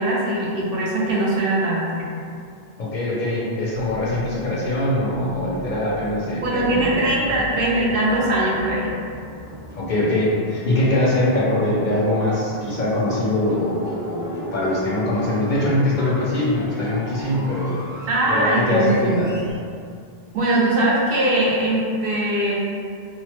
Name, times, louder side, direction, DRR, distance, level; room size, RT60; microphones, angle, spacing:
voice 1, 0.0-2.0 6.4-8.9 18.1-19.2 20.3-22.6, right 1 dB, 70° right, -5 dB, 0.8 m, -21 dB
voice 2, 2.8-7.1 9.8-17.7 18.3-19.3, left 1 dB, 60° left, -6 dB, 0.6 m, -22 dB
sound 1, 3.6-19.5, equal, 5° right, 0.6 m, -39 dB
2.9 x 2.0 x 2.9 m, 2.3 s
omnidirectional pair, 1.0 m